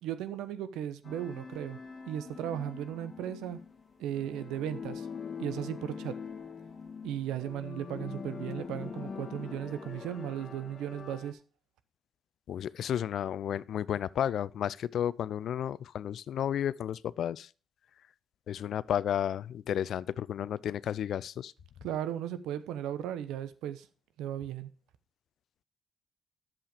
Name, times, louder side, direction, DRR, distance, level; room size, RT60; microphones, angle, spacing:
voice 1, 0.0-1.8 2.1-3.6 4.0-5.1 5.4-6.2 7.0-11.4 21.8-23.9 24.2-24.7, right 11 dB, 85° right, 0.9 m, -36 dB
sound 1, 1.0-11.3, left 5 dB, 45° left, 1.8 m, -43 dB
voice 2, 12.5-17.5 18.5-21.5, left 10 dB, 75° left, 0.4 m, -32 dB
11.0 x 7.5 x 5.0 m
supercardioid pair, 55°, 0 cm